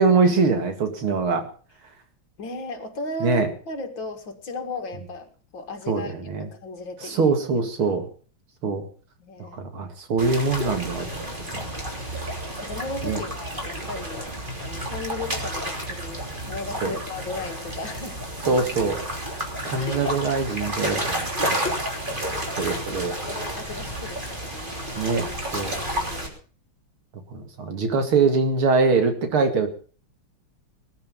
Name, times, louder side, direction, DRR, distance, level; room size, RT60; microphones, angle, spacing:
voice 1, 0.0-1.5 3.2-3.5 5.9-6.5 7.0-8.1 8.6-8.8 9.6-11.1 11.5-11.7 13.0-13.2 16.8-17.0 18.5-19.0 19.6-21.7 22.6-23.1 25.0-25.3 25.5-25.8 27.3-29.7, right 4 dB, 75° right, 6 dB, 3.0 m, -23 dB
voice 2, 2.4-7.3 7.6-8.0 9.2-9.7 12.5-14.3 14.6-18.2 19.6-20.2 22.1-25.0 25.8-26.4, left 2 dB, 65° left, 5 dB, 2.7 m, -36 dB
sound 1, 10.2-26.3, right 1 dB, 20° right, 3.3 m, -31 dB
20.0 x 10.5 x 5.4 m, 0.41 s
omnidirectional pair, 2.3 m